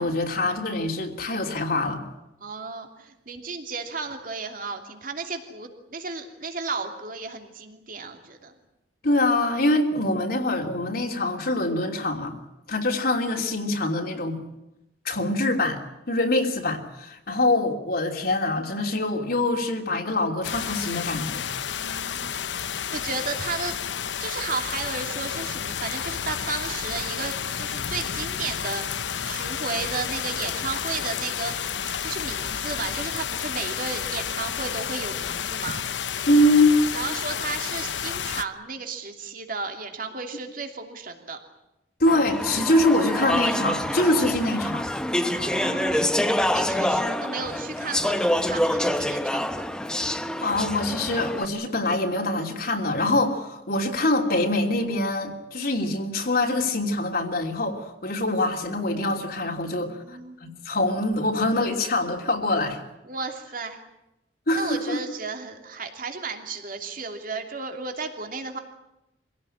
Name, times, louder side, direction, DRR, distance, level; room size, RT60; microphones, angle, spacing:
voice 1, 0.0-2.0 9.0-12.3 12.7-14.4 15.0-15.8 16.1-21.5 36.3-36.8 42.0-44.8 50.4-62.8 64.5-65.0, left 2 dB, 55° left, 2 dB, 3.0 m, -24 dB
voice 2, 2.4-8.5 21.8-22.4 22.9-23.7 24.2-28.9 29.2-31.7 32.0-35.8 36.9-41.4 45.2-46.0 46.5-49.6 59.9-60.4 63.1-63.8 64.5-68.6, right 4 dB, 50° right, 5 dB, 2.9 m, -34 dB
sound 1, 20.4-38.4, left 8 dB, 80° left, 0.8 m, -31 dB
Speech / Chatter, 42.1-51.4, left 1 dB, 5° left, 0.9 m, -26 dB
25.0 x 17.0 x 9.9 m, 0.90 s
head